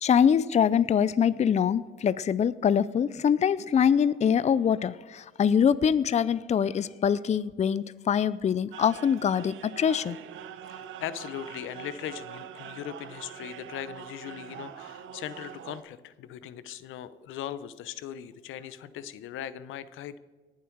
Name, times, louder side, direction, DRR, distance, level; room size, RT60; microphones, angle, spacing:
voice 1, 0.0-10.2, left 8 dB, 35° left, 17 dB, 0.5 m, -24 dB
sound 1, 8.7-15.8, right 9 dB, 80° right, 0.9 m, -43 dB
voice 2, 10.7-20.2, left 10 dB, 85° left, 15 dB, 0.7 m, -39 dB
19.0 x 7.5 x 4.6 m, 1.3 s
cardioid pair, 90°, 20 cm